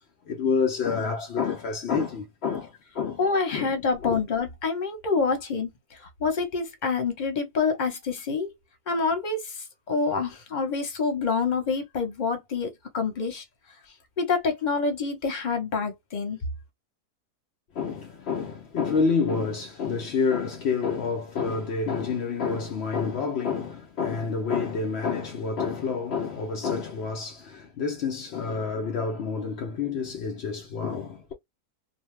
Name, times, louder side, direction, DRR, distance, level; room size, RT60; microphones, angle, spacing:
voice 1, 0.3-3.2 3.5-3.7 4.0-4.2 17.8-31.3, left 5 dB, 75° left, 0.6 m, -28 dB
voice 2, 3.2-5.7 6.2-8.5 8.9-9.4 9.9-13.4 14.2-16.4, left 4 dB, 35° left, 0.8 m, -27 dB
2.6 x 2.1 x 3.2 m
omnidirectional pair, 1.7 m